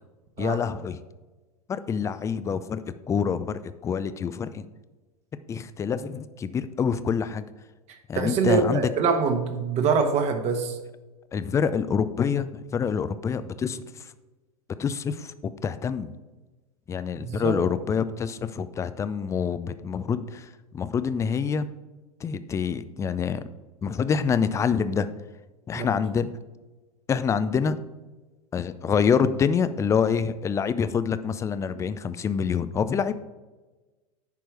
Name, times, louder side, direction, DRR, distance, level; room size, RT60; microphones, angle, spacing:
voice 1, 0.4-1.0 1.7-2.8 3.1-4.7 5.5-7.4 8.1-8.8 11.3-13.8 14.8-16.1 16.9-20.5 20.7-21.7 22.2-23.4 23.8-25.1 25.7-26.3 27.1-27.8 28.5-33.1, left 6 dB, 15° left, 13 dB, 0.4 m, -26 dB
voice 2, 8.1-10.8 17.2-17.6 25.7-25.9 31.7-31.8, right 5 dB, 35° right, 6 dB, 1.3 m, -24 dB
10.5 x 4.6 x 4.7 m, 1.2 s
figure-of-eight pair, 95°, 19 cm